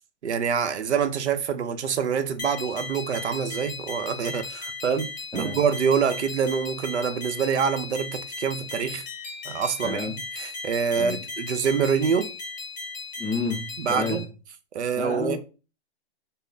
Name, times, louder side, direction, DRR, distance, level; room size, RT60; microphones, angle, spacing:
voice 1, 0.2-9.0 9.4-12.3 13.8-14.2 14.7-15.4, right 6 dB, 85° right, 0.6 m, -26 dB
sound 1, 2.4-14.2, left 3 dB, 40° left, 1.2 m, -37 dB
voice 2, 9.8-10.1 10.9-11.2 13.2-14.2 15.0-15.4, left 3 dB, ahead, 0.8 m, -30 dB
3.3 x 2.0 x 3.9 m
hypercardioid pair, 170°, 33 cm